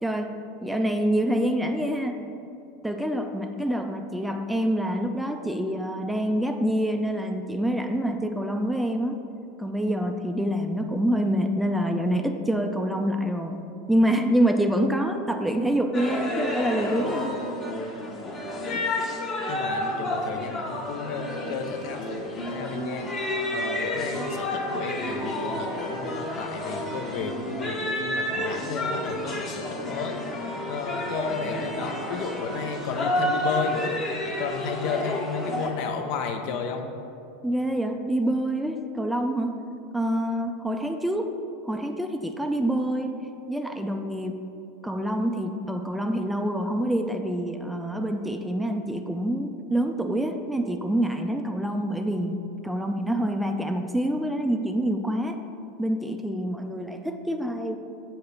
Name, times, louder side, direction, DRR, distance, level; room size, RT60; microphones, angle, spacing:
voice 1, 0.0-0.3 0.6-2.2 2.8-9.2 9.6-17.3 37.4-39.5 39.9-41.3 41.7-43.2 43.5-44.4 44.8-55.4 55.8-57.8, right 1 dB, 5° right, 5 dB, 0.4 m, -26 dB
sound 1, 15.9-35.7, left 1 dB, 30° left, 1.0 m, -30 dB
voice 2, 18.6-23.1 23.5-30.2 30.7-33.9 34.2-36.9, left 6 dB, 55° left, 5 dB, 0.5 m, -33 dB
7.6 x 2.8 x 5.4 m, 2.6 s
figure-of-eight pair, 85°, 0 cm